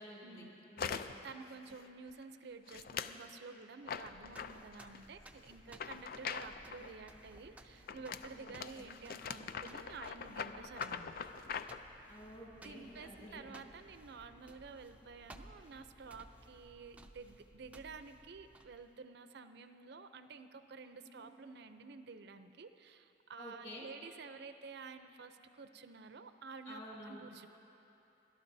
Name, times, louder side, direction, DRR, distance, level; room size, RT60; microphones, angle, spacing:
voice 1, 0.0-1.2 8.4-8.9 12.0-13.6 20.9-21.3 23.4-23.9 26.6-27.3, equal, 35° left, -4 dB, 3.1 m, -51 dB
sound 1, 0.8-1.3 1.7-2.1 2.7-3.2 3.9-5.0 5.7-6.9 7.9-11.8, left 6 dB, 55° left, 0.4 m, -43 dB
voice 2, 1.2-11.2 11.5-11.7 12.6-27.5, right 4 dB, 65° right, 10 dB, 0.6 m, -51 dB
Pisadas Cemento, 3.9-19.0, right 1 dB, 10° right, 0.5 m, -59 dB
sound 2, 6.8-16.6, left 1 dB, 85° left, 2.1 m, -69 dB
29.0 x 12.5 x 2.7 m, 2.9 s
head